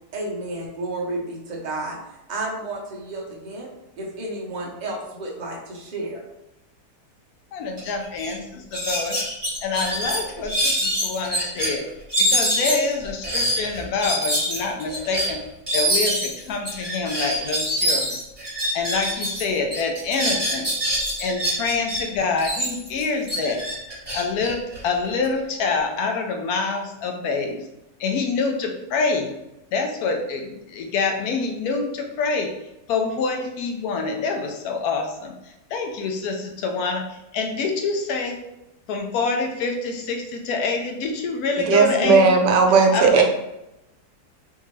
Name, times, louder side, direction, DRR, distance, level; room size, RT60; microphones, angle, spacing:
voice 1, 0.1-6.2, right 2 dB, 65° right, -2 dB, 0.4 m, -32 dB
voice 2, 7.5-9.2 9.6-11.8 12.2-15.4 15.7-18.2 18.7-20.7 21.2-23.6 24.1-27.6 28.0-29.3 29.7-32.5 32.9-38.4 38.9-42.3 42.9-43.2, left 4 dB, 70° left, 3 dB, 1.0 m, -26 dB
sound 1, 7.8-7.9 8.2-8.3 8.7-11.7 12.1-19.4 19.7-22.0 22.4-25.3, equal, 15° right, 1.1 m, -25 dB
voice 3, 41.6-43.2, right 4 dB, 85° right, 3 dB, 1.2 m, -16 dB
3.6 x 2.7 x 3.0 m, 0.90 s
omnidirectional pair, 1.8 m